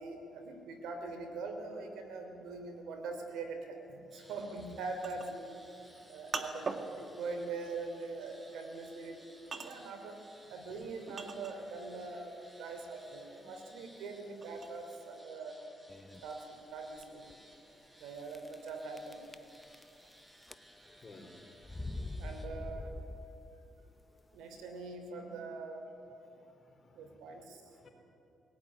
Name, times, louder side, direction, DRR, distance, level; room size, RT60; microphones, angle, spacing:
voice 1, 0.0-5.6 6.1-10.2 10.5-15.6 16.2-17.3 18.0-19.2 22.2-22.9 24.3-25.8 26.9-27.6, right 3 dB, 90° right, 5 dB, 3.4 m, -43 dB
sound 1, 4.1-22.5, equal, 15° right, 4.9 m, -60 dB
sound 2, 4.6-11.9 12.3-15.2, right 4 dB, 45° right, 2.0 m, -44 dB
sound 3, 15.9-16.3 16.9-17.0 17.3-17.4 18.3-18.7 19.0-20.1 20.4-21.0 21.6-23.6, left 2 dB, 15° left, 1.0 m, -43 dB
voice 2, 26.3-27.1 27.7-27.9, left 3 dB, 45° left, 4 dB, 4.2 m, -57 dB
21.0 x 17.5 x 9.8 m, 2.9 s
cardioid pair, 75°, 0 cm